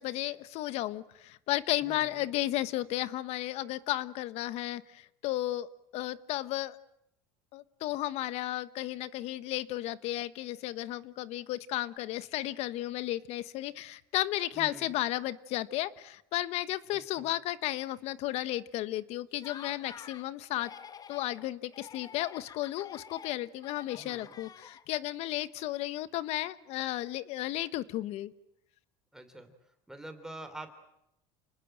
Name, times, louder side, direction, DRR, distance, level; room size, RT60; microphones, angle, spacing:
voice 1, 0.0-6.8 7.5-20.7 21.1-28.3, left 15 dB, 65° left, 15 dB, 1.2 m, -34 dB
voice 2, 1.8-2.3 14.5-14.9 16.9-17.3 24.0-24.4 29.1-29.5 29.9-30.8, right 2 dB, 5° right, 7 dB, 3.1 m, -46 dB
Laughter, 19.3-20.3 20.5-21.4 21.7-25.1, left 7 dB, 30° left, 1.1 m, -49 dB
29.0 x 20.0 x 9.1 m, 0.80 s
supercardioid pair, 110°, 12 cm